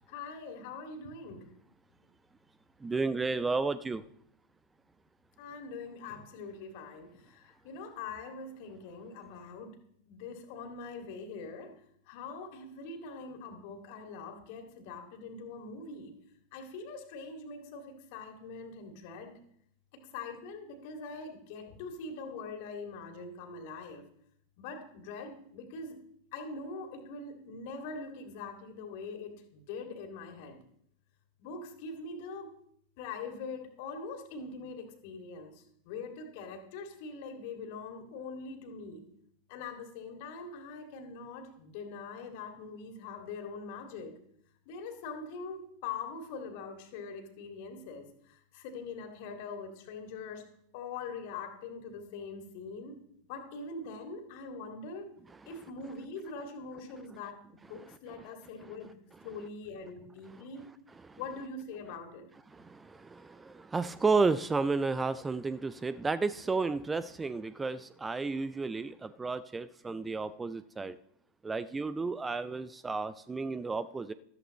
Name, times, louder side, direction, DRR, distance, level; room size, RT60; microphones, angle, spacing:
voice 1, 0.1-1.4 5.4-9.8 10.1-11.7 12.1-16.1 16.5-19.3 19.9-24.0 24.6-26.0 26.3-30.6 31.4-32.5 33.0-39.0 39.5-44.1 44.7-50.4 50.7-53.0 53.3-55.1 55.5-57.4 57.7-58.9 59.2-60.7 61.2-62.3, left 4 dB, 45° left, 4 dB, 2.3 m, -43 dB
voice 2, 2.8-4.0 58.6-58.7 60.3-60.4 61.0-61.2 62.5-71.0 71.4-74.1, right 4 dB, 15° right, 15 dB, 0.4 m, -32 dB
14.0 x 13.5 x 3.1 m, 0.68 s
figure-of-eight pair, 90°, 0 cm